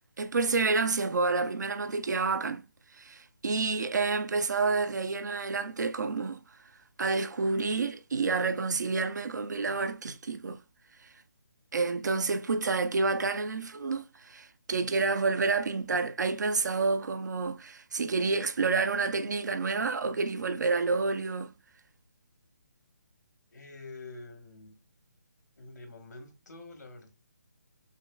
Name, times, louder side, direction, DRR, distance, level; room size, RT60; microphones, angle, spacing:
voice 1, 0.2-2.6 2.9-6.4 7.0-10.6 11.7-21.5, right 4 dB, 85° right, 0.5 m, -29 dB
voice 2, 23.5-24.8 25.6-27.1, left 3 dB, 90° left, 1.4 m, -47 dB
6.1 x 2.2 x 2.2 m
hypercardioid pair, 165°, 9 cm